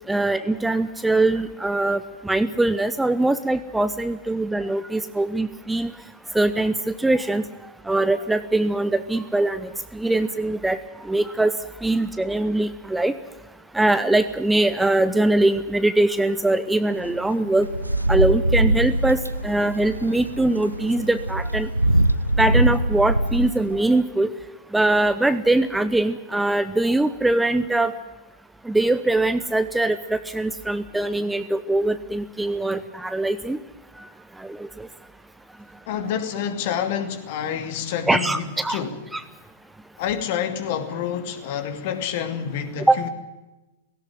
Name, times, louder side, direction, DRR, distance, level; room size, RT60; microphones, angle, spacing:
voice 1, 0.1-5.9 6.3-11.5 11.8-13.1 13.7-17.7 18.1-21.7 22.4-24.3 24.7-27.9 28.6-33.6 34.0-34.1 34.4-34.9 38.1-38.9 39.1-39.2 42.9-43.0, right 2 dB, 5° right, 12 dB, 0.8 m, -22 dB
sound 1, 17.0-23.9, right 1 dB, 90° right, 0.7 m, -23 dB
voice 2, 35.9-39.0 40.0-43.1, left 8 dB, 45° left, 8 dB, 2.6 m, -28 dB
17.5 x 17.5 x 9.1 m, 1.0 s
figure-of-eight pair, 105°, 0 cm